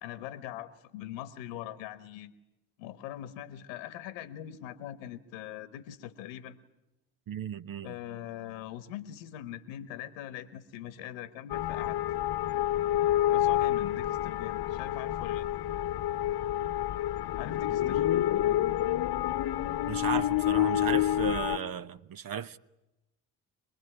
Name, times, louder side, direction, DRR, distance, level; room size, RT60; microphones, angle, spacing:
voice 1, 0.0-2.3 2.8-6.6 7.8-12.0 13.3-15.5 17.4-18.0, left 12 dB, 90° left, 1.2 m, -42 dB
voice 2, 7.3-8.0 19.9-22.6, right 8 dB, 50° right, 0.9 m, -35 dB
sound 1, 11.5-21.6, left 12 dB, 55° left, 1.0 m, -28 dB
25.5 x 20.5 x 10.0 m
hypercardioid pair, 55°, 44 cm